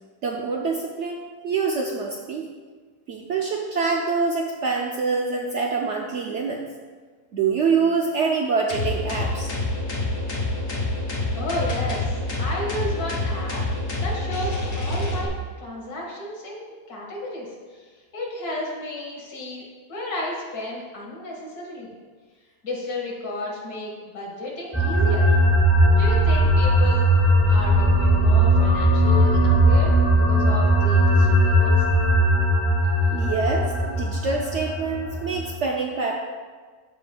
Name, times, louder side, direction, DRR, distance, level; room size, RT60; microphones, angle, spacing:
voice 1, 0.2-1.2 1.4-2.5 3.1-6.6 7.3-9.5 33.1-36.2, right 4 dB, 65° right, 0 dB, 0.7 m, -25 dB
sound 1, 8.7-15.3, left 2 dB, 40° left, 1.1 m, -27 dB
voice 2, 11.3-13.6 14.0-15.3 15.6-17.9 18.1-21.9 22.6-25.3 26.0-27.1 27.5-31.7, left 1 dB, 70° left, -3 dB, 2.1 m, -33 dB
sound 2, 24.7-35.5, equal, 10° left, 1.5 m, -18 dB
13.5 x 5.1 x 2.2 m, 1.5 s
omnidirectional pair, 1.7 m